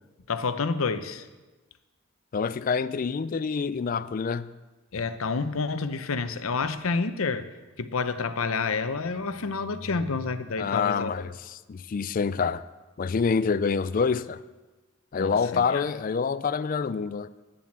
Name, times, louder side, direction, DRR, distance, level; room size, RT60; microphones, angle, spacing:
voice 1, 0.3-1.2 4.9-7.5 7.8-11.1 15.1-15.8, left 4 dB, 80° left, 11 dB, 0.7 m, -29 dB
voice 2, 2.3-4.5 10.6-12.6 13.0-14.4 15.1-17.3, left 5 dB, 40° left, 16 dB, 0.3 m, -27 dB
10.0 x 7.5 x 7.3 m, 1.2 s
head